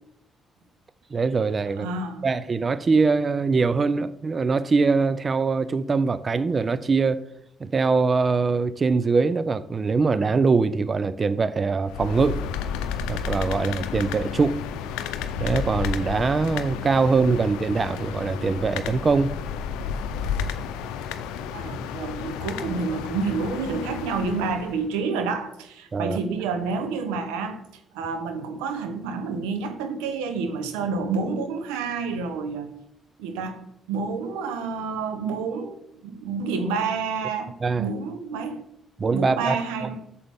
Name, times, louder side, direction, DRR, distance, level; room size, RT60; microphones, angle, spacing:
voice 1, 1.1-1.9 2.2-7.2 7.6-12.4 13.1-14.6 15.4-19.4 25.9-26.2 37.6-37.9 39.0-39.6, right 4 dB, 40° right, 0.4 m, -22 dB
voice 2, 1.8-2.3 21.5-27.6 27.9-32.7 33.2-38.6 39.1-40.0, right 4 dB, 90° right, 0.9 m, -29 dB
sound 1, 11.8-24.8, left 7 dB, 85° left, 0.6 m, -31 dB
8.7 x 6.9 x 3.5 m
supercardioid pair, 55°, 0 cm